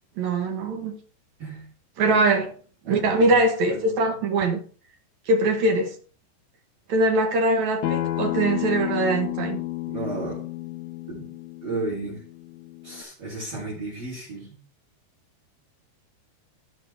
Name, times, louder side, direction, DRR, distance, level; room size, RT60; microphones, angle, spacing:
voice 1, 0.2-0.9 2.0-2.5 2.9-4.6 5.3-6.0 6.9-9.6, right 2 dB, 70° right, 3 dB, 1.8 m, -22 dB
voice 2, 3.7-4.2 9.9-10.4 11.1-11.3 11.6-12.2 12.8-14.6, right 3 dB, 35° right, -5 dB, 3.7 m, -33 dB
Acoustic guitar, 7.8-13.0, left 16 dB, 75° left, 2.4 m, -31 dB
15.0 x 5.5 x 3.4 m, 0.42 s
omnidirectional pair, 5.0 m